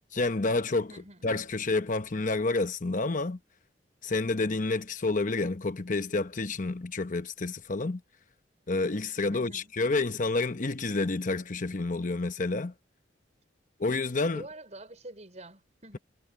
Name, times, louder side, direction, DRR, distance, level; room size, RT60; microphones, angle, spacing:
voice 1, 0.1-0.9 1.2-3.4 4.0-8.0 8.7-12.7 13.8-14.4, left 3 dB, 45° left, 0.9 m, -29 dB
voice 2, 0.9-1.3 9.3-9.7 14.3-16.0, right 2 dB, 40° right, 5.4 m, -47 dB
head